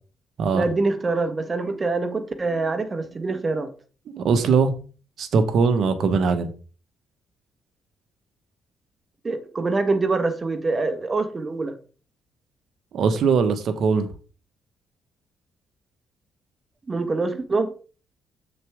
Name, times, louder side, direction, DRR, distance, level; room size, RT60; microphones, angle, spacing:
voice 1, 0.5-3.7 9.2-11.8 16.9-17.7, right 3 dB, 30° right, 1.4 m, -25 dB
voice 2, 4.1-4.7 5.2-6.5 12.9-14.1, right 5 dB, 65° right, 1.3 m, -21 dB
7.2 x 6.6 x 3.6 m
cardioid pair, 90°, 0 cm